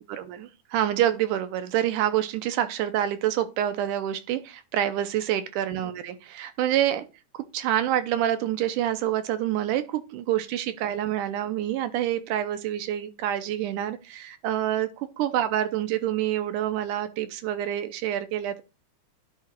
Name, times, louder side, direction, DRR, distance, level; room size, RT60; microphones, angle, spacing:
voice 1, 0.1-7.0 7.3-18.6, right 11 dB, 80° right, 2.2 m, -27 dB
10.5 x 3.7 x 4.4 m
omnidirectional pair, 3.7 m